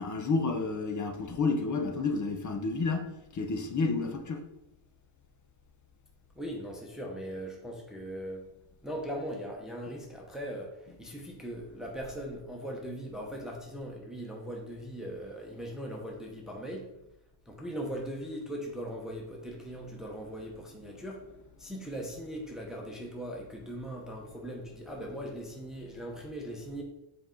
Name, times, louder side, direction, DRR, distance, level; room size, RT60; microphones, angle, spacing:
voice 1, 0.0-4.5, left 3 dB, 35° left, 0.8 m, -30 dB
voice 2, 6.3-8.5 8.8-16.9 17.5-21.2 21.6-26.8, equal, ahead, 0.9 m, -39 dB
7.9 x 4.7 x 3.8 m
cardioid pair, 150°, 49 cm